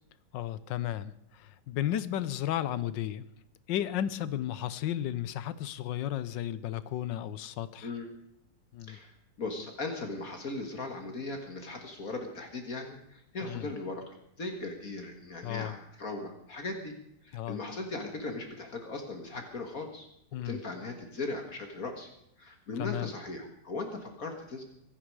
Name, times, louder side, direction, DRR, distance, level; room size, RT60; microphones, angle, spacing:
voice 1, 0.3-3.3 3.7-7.9 8.7-9.0 13.4-13.7 15.4-15.7 17.3-17.6 20.3-20.6 22.8-23.1, left 11 dB, 85° left, 16 dB, 1.5 m, -34 dB
voice 2, 8.9-17.0 17.2-20.1 20.4-22.1 22.4-24.6, left 3 dB, 50° left, 4 dB, 2.2 m, -38 dB
24.5 x 9.9 x 4.8 m, 0.75 s
omnidirectional pair, 1.9 m